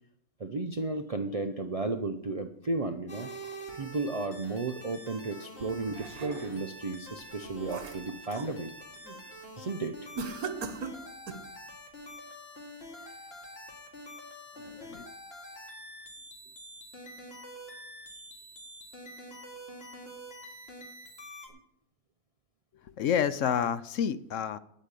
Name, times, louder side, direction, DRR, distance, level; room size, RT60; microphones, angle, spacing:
voice 1, 0.4-3.3 3.7-8.7 9.6-10.1 13.0-13.1 21.5-21.6, right 3 dB, 45° right, 7 dB, 0.4 m, -34 dB
sound 1, 3.1-21.5, equal, 45° left, 2.5 m, -46 dB
sound 2, 5.6-6.7 7.2-8.6 9.0-9.3 10.2-11.5, right 5 dB, 90° right, 1.5 m, -40 dB
voice 2, 14.6-15.1 22.8-24.6, left 8 dB, 65° left, 14 dB, 0.9 m, -29 dB
9.7 x 8.2 x 8.2 m, 0.73 s
omnidirectional pair, 1.5 m